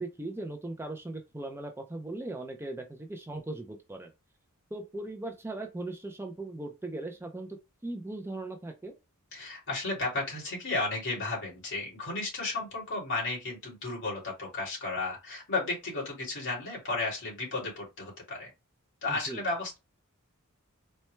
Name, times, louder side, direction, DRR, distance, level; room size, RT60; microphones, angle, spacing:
voice 1, 0.0-4.1 4.7-7.6 7.8-8.9 19.1-19.4, right 2 dB, 10° right, 0.4 m, -38 dB
voice 2, 9.3-18.5 19.0-19.8, left 3 dB, 60° left, 2.3 m, -33 dB
4.3 x 2.3 x 3.2 m
head